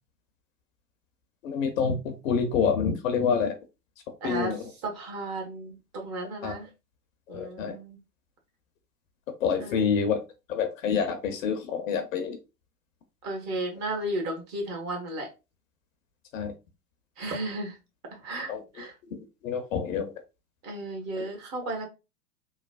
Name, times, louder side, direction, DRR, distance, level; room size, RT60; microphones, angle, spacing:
voice 1, 1.4-3.5 4.2-4.6 6.4-6.5 7.3-7.8 9.4-10.2 10.5-12.4 16.3-16.5 18.5-18.6 19.4-20.1, left 6 dB, 55° left, 0.7 m, -27 dB
voice 2, 4.2-6.7 7.3-8.0 9.6-9.9 13.2-15.3 17.2-17.8 18.2-18.9 20.6-21.9, right 1 dB, 35° right, 1.2 m, -34 dB
3.1 x 2.1 x 2.4 m
figure-of-eight pair, 100°, 48 cm